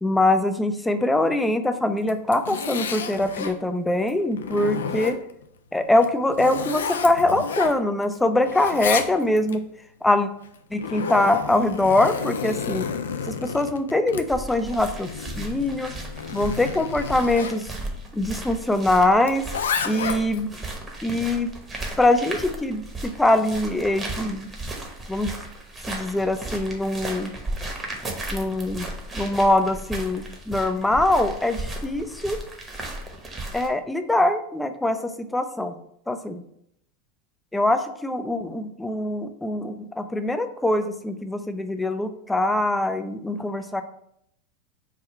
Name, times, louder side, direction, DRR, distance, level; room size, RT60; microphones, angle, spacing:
voice 1, 0.0-5.2 5.7-9.6 10.0-10.3 10.7-12.9 13.3-15.1 15.4-15.9 16.3-17.7 18.1-19.4 19.8-20.5 21.0-21.5 22.0-24.5 25.1-25.3 25.9-27.3 28.3-28.9 29.1-32.4 33.5-35.8 36.1-36.4 37.5-43.8, left 1 dB, 5° left, 8 dB, 0.3 m, -23 dB
Zipper (clothing), 2.0-3.6 4.1-5.4 5.9-8.2 8.4-9.6 10.4-17.6 19.2-20.4, left 6 dB, 85° left, 0.3 m, -31 dB
sound 1, 14.3-33.7, right 2 dB, 20° right, 0.8 m, -35 dB
3.5 x 2.2 x 4.4 m, 0.72 s
hypercardioid pair, 105°, 0 cm